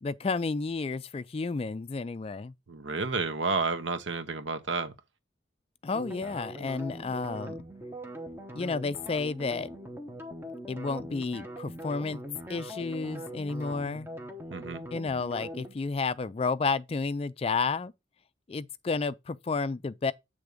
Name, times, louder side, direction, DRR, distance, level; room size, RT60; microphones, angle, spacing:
voice 1, 0.0-2.5 5.8-7.6 8.5-9.7 10.7-12.2 12.5-14.1 14.9-17.9 18.5-20.1, left 4 dB, 30° left, 0.3 m, -31 dB
voice 2, 2.7-4.9 14.5-14.8, right 4 dB, 85° right, 1.0 m, -31 dB
sound 1, 5.9-15.8, right 1 dB, 10° right, 0.9 m, -42 dB
8.1 x 3.5 x 5.0 m
head